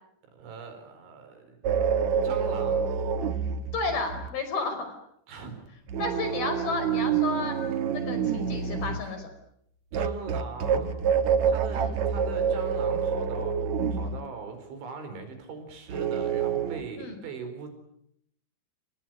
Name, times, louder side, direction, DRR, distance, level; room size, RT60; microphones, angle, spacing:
voice 1, 0.3-1.7 2.2-2.9 5.3-5.5 9.9-10.9 11.3-17.7, right 4 dB, 65° right, 8 dB, 6.6 m, -40 dB
sound 1, 1.6-4.3 5.9-9.1 9.9-14.3 15.9-16.8, right 7 dB, 80° right, 1.6 m, -27 dB
voice 2, 3.7-4.9 6.0-7.6 8.0-9.3 11.7-11.9 17.0-17.2, left 3 dB, 50° left, 7 dB, 6.4 m, -32 dB
29.0 x 20.5 x 9.1 m, 0.73 s
omnidirectional pair, 5.9 m